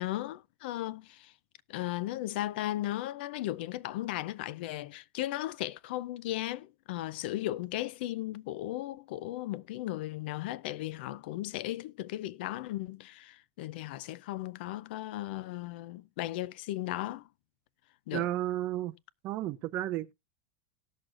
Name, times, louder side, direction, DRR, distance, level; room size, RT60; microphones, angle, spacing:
voice 1, 0.0-1.3 1.7-17.3 18.1-18.3, left 15 dB, 60° left, 0.4 m, -36 dB
voice 2, 18.1-18.9 19.2-20.1, right 14 dB, 35° right, 0.4 m, -32 dB
18.0 x 6.3 x 2.4 m
supercardioid pair, 170°, 6 cm